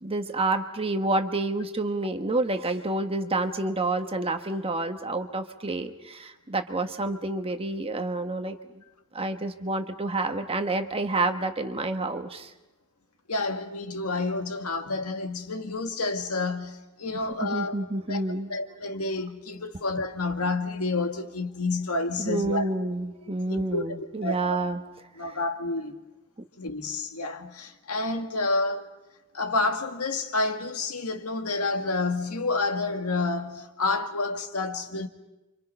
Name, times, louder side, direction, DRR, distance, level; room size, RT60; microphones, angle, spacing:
voice 1, 0.0-8.6 9.1-12.5 17.4-18.5 22.2-24.8, right 2 dB, 25° right, 1.3 m, -28 dB
voice 2, 13.3-17.7 18.1-18.2 18.5-22.6 23.5-24.0 24.2-24.6 25.2-26.0 26.6-28.9 29.3-35.1, left 3 dB, 90° left, 1.9 m, -29 dB
29.0 x 26.0 x 5.6 m
head